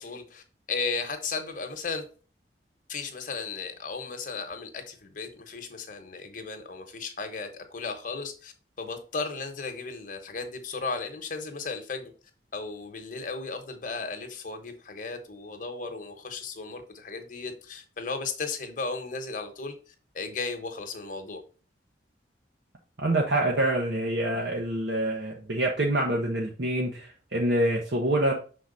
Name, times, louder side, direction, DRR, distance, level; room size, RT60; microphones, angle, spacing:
voice 1, 0.0-2.0 2.9-12.1 12.5-21.4, left 4 dB, 50° left, 1.1 m, -35 dB
voice 2, 23.0-28.3, right 1 dB, 65° right, 0.9 m, -26 dB
6.1 x 4.0 x 4.0 m
head